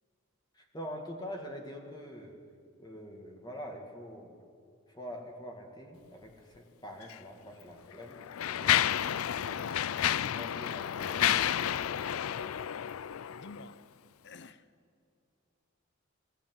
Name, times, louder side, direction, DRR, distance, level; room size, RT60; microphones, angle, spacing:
voice 1, 0.5-2.4 2.8-4.4 5.0-8.9 9.4-9.8 10.2-12.5, equal, 20° left, 2.0 m, -45 dB
Mechanisms, 7.0-7.2 7.9-13.7, left 10 dB, 85° left, 0.4 m, -30 dB
voice 2, 13.3-13.9 14.2-14.7, left 3 dB, 55° left, 0.8 m, -51 dB
20.5 x 16.5 x 9.3 m
head